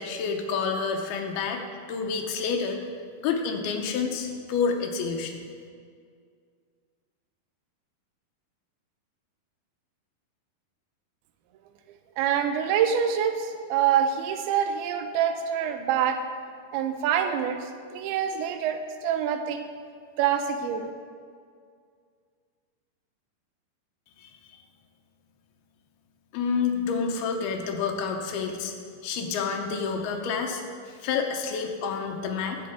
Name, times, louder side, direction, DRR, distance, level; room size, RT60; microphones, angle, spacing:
voice 1, 0.0-1.6 1.9-2.8 3.2-5.5 24.2-24.3 26.3-28.7 29.0-30.6 31.0-32.6, left 5 dB, 85° left, 2 dB, 2.7 m, -28 dB
voice 2, 12.2-16.2 16.7-17.6 17.9-19.6 20.2-20.9, right 8 dB, 85° right, 7 dB, 2.5 m, -25 dB
12.0 x 7.7 x 3.5 m, 2.1 s
omnidirectional pair, 4.5 m